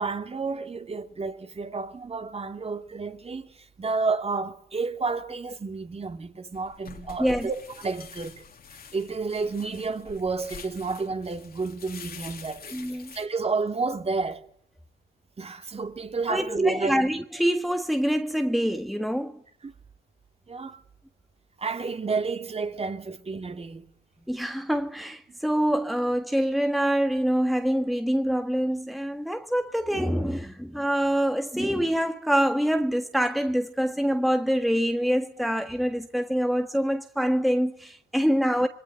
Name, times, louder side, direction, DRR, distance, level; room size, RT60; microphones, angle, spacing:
voice 1, 0.0-8.4 8.9-12.7 13.1-14.4 15.4-17.0 19.6-19.7 20.5-20.8 21.6-23.9 25.3-25.4, right 4 dB, 30° right, 2.9 m, -30 dB
sound 1, 6.5-13.3, left 6 dB, 50° left, 3.2 m, -46 dB
voice 2, 12.7-13.1 16.3-19.4 24.3-38.7, equal, ahead, 1.7 m, -25 dB
26.0 x 23.0 x 9.1 m
cardioid pair, 90°, 20 cm